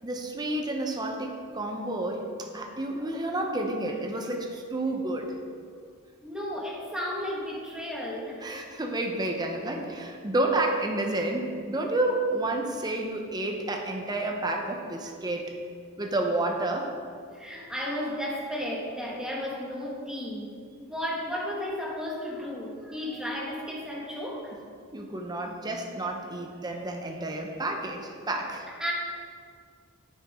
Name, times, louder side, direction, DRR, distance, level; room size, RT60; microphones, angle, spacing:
voice 1, 0.0-5.4 8.4-15.5 16.0-16.9 24.9-28.7, right 2 dB, 20° right, 2 dB, 0.8 m, -30 dB
voice 2, 6.2-8.4 17.3-24.5 28.7-28.9, equal, 5° right, -4 dB, 1.6 m, -34 dB
9.7 x 8.6 x 3.7 m, 2.1 s
head